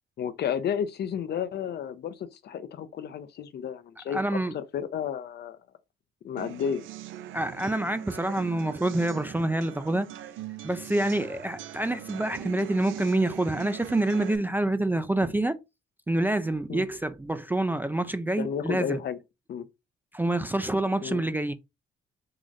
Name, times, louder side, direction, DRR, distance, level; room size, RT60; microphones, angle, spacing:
voice 1, 0.2-5.6 6.2-6.8 16.7-16.9 18.4-19.2 19.5-19.7 21.0-21.2, left 8 dB, 55° left, 0.6 m, -32 dB
voice 2, 4.1-4.5 7.3-10.1 10.6-15.6 16.1-19.0 20.1-21.5, right 1 dB, 10° right, 0.3 m, -27 dB
sound 1, 6.4-14.4, right 12 dB, 80° right, 0.4 m, -41 dB
3.8 x 2.5 x 3.1 m
cardioid pair, 90°, 20 cm